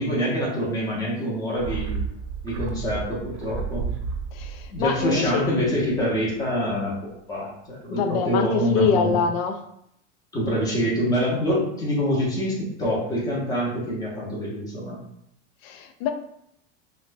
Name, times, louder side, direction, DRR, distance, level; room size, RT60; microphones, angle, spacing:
voice 1, 0.0-2.0 2.4-3.9 4.7-9.2 10.3-15.0, equal, 10° left, -5 dB, 0.7 m, -25 dB
sound 1, 1.5-6.1 6.4-6.5, right 5 dB, 80° right, 0.7 m, -32 dB
voice 2, 4.3-5.4 7.9-9.6 15.6-16.1, left 6 dB, 55° left, 6 dB, 0.4 m, -24 dB
4.1 x 2.2 x 2.5 m, 0.75 s
supercardioid pair, 160°, 37 cm